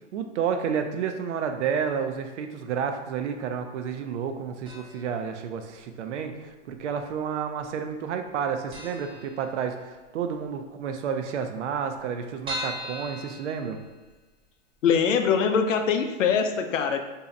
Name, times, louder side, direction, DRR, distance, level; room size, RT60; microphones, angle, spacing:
voice 1, 0.1-13.8, right 7 dB, 70° right, 6 dB, 0.6 m, -30 dB
sound 1, 4.6-5.2 5.4-5.5 6.5-7.2 7.5-7.6 7.9-8.0 8.3-8.4 8.7-10.0 10.4-10.5 10.8-10.9 11.1-11.2 11.7-14.3 14.7-14.8 15.2-15.3, equal, 15° right, 0.7 m, -38 dB
voice 2, 14.8-17.0, left 6 dB, 85° left, 6 dB, 0.5 m, -23 dB
2.7 x 2.3 x 4.0 m, 1.2 s
hypercardioid pair, 125°, 37 cm